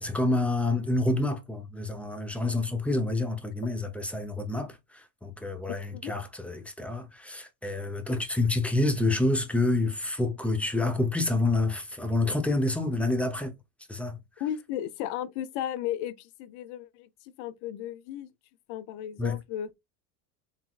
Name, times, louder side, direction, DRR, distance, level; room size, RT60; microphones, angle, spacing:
voice 1, 0.0-13.5 13.9-14.2 19.2-19.4, left 2 dB, 5° left, 0.7 m, -28 dB
voice 2, 14.4-18.3 18.7-19.7, left 11 dB, 65° left, 0.7 m, -35 dB
4.0 x 3.6 x 2.4 m
supercardioid pair, 120°, 50 cm